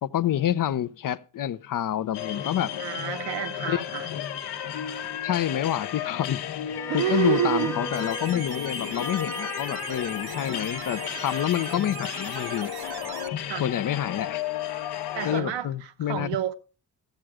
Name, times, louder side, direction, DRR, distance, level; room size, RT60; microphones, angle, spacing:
voice 1, 0.0-2.7 3.7-4.2 5.2-6.4 6.9-12.7 13.6-14.4 15.2-16.3, left 11 dB, 50° left, 0.7 m, -28 dB
sound 1, 2.1-15.4, left 10 dB, 65° left, 1.1 m, -33 dB
voice 2, 2.8-4.1 6.9-7.8 13.5-13.7 15.1-16.5, right 10 dB, 90° right, 1.2 m, -28 dB
Bowed string instrument, 6.7-11.6, left 2 dB, 5° left, 0.9 m, -38 dB
sound 2, 7.9-13.3, right 10 dB, 60° right, 0.8 m, -40 dB
14.0 x 7.8 x 4.8 m
cardioid pair, 105°, 42 cm